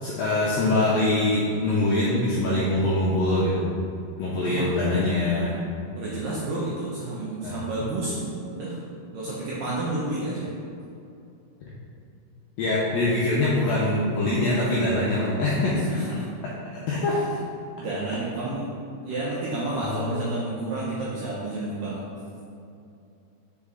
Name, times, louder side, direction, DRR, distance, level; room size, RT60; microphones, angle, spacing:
voice 1, 0.0-3.6 4.2-5.6 7.4-7.7 12.6-15.9 16.7-17.2 19.8-20.2, left 2 dB, 85° left, -6 dB, 2.0 m, -23 dB
voice 2, 4.5-4.8 5.9-8.8 9.1-10.5 15.8-16.2 17.1-17.2 17.8-18.7 19.0-22.0, right 2 dB, 80° right, -7 dB, 2.0 m, -30 dB
6.3 x 4.1 x 3.6 m, 2.6 s
omnidirectional pair, 4.8 m